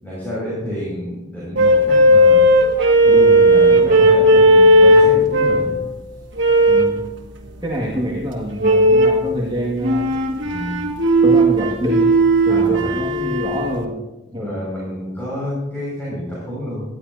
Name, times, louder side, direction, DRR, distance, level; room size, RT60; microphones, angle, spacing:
voice 1, 0.0-2.5 3.0-5.8 10.4-10.8 12.5-12.8 14.3-16.8, equal, 10° left, -8 dB, 5.8 m, -28 dB
sound 1, 1.6-5.8 6.4-7.0 8.6-9.3 9.8-13.8, right 1 dB, 70° right, 1.9 m, -14 dB
voice 2, 6.7-7.0 7.6-10.1 11.2-12.2 12.5-14.0 14.3-14.6, right 1 dB, 25° right, -5 dB, 2.0 m, -25 dB
19.5 x 13.5 x 2.8 m, 1.0 s
head